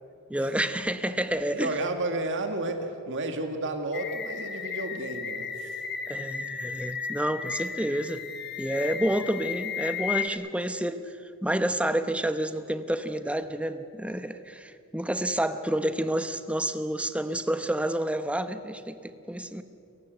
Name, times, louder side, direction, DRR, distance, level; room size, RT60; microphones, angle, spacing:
voice 1, 0.3-1.7 6.1-8.2 8.6-11.2 11.4-19.6, right 1 dB, 5° right, 10 dB, 0.9 m, -29 dB
voice 2, 1.5-5.8, right 2 dB, 60° right, 6 dB, 2.0 m, -32 dB
sound 1, 3.9-10.3, left 7 dB, 50° left, 1.5 m, -34 dB
29.5 x 15.5 x 8.2 m, 2.6 s
head